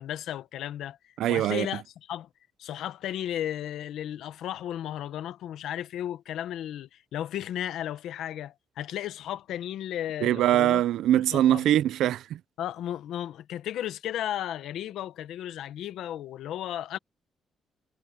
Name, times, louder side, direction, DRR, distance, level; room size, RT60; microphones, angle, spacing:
voice 1, 0.0-1.8 2.1-2.3 2.6-10.8 11.3-11.6 12.6-17.0, left 11 dB, 85° left, 1.2 m, -34 dB
voice 2, 1.2-1.7 10.2-12.4, right 12 dB, 90° right, 0.6 m, -23 dB
cardioid pair, 155°, 0 cm